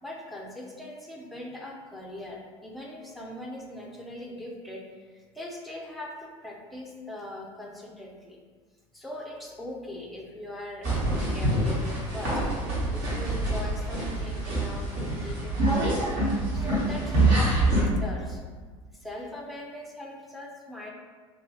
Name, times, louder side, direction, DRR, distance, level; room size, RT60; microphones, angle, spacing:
voice 1, 0.0-8.4 8.9-12.4 12.7-16.1 16.5-18.4 18.9-20.9, left 1 dB, ahead, -1 dB, 0.5 m, -41 dB
sound 1, 10.8-17.8, right 1 dB, 55° right, 1.3 m, -26 dB
2.8 x 2.6 x 3.1 m, 1.5 s
figure-of-eight pair, 75°, 18 cm